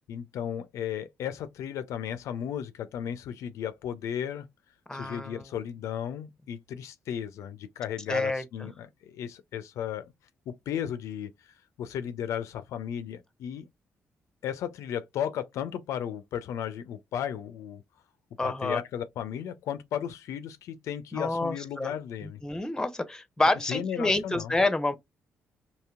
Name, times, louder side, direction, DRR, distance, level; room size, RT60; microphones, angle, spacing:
voice 1, 0.1-4.5 4.9-10.1 10.5-13.7 14.4-17.8 18.4-22.4 23.7-24.5, left 9 dB, 75° left, 0.4 m, -35 dB
voice 2, 4.9-5.5 8.1-8.4 18.4-18.8 21.1-21.9 22.2-25.0, left 2 dB, 10° left, 0.7 m, -28 dB
2.8 x 2.8 x 2.3 m
supercardioid pair, 55°, 5 cm